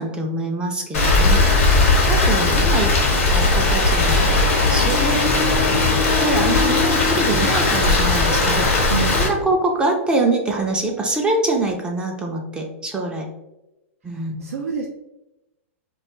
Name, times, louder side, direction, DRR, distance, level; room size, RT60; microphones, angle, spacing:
voice 1, 0.0-1.4 2.0-2.9 3.3-5.5 6.2-8.9 9.2-13.3 14.0-14.5, right 2 dB, 15° right, 1 dB, 0.3 m, -24 dB
Rain, 0.9-9.3, left 3 dB, 75° left, 0.8 m, -17 dB
voice 2, 8.8-9.3 14.1-14.9, right 5 dB, 90° right, 0 dB, 0.3 m, -28 dB
2.4 x 2.2 x 2.9 m, 0.95 s
hypercardioid pair, 125°, 7 cm